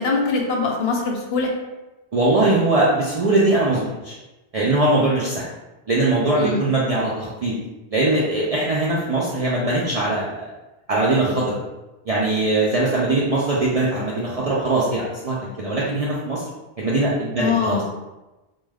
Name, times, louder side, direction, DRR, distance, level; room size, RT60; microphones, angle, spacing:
voice 1, 0.0-1.5 6.4-6.6 17.4-17.8, left 4 dB, 70° left, 1 dB, 0.8 m, -22 dB
voice 2, 2.1-4.2 4.5-5.4 5.9-7.5 7.9-10.4 10.9-11.6 12.1-16.4 16.8-17.8, right 2 dB, 55° right, -6 dB, 0.4 m, -21 dB
2.2 x 2.2 x 3.3 m, 1.0 s
omnidirectional pair, 1.1 m